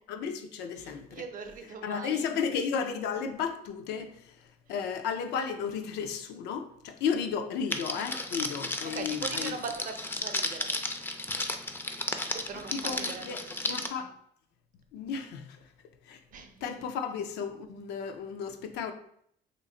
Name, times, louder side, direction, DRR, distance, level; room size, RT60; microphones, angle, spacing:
voice 1, 0.1-1.2 1.8-4.3 4.7-9.5 12.7-14.1 14.9-15.6 16.1-16.2 16.6-18.9, left 6 dB, 85° left, 7 dB, 0.5 m, -33 dB
voice 2, 0.8-2.3 4.7-4.8 8.9-10.7 12.3-13.9 16.3-16.8, right 5 dB, 55° right, 6 dB, 0.6 m, -41 dB
Crackle, 7.7-13.9, left 2 dB, 15° left, 0.3 m, -34 dB
3.0 x 2.4 x 3.7 m, 0.68 s
cardioid pair, 110°, 17 cm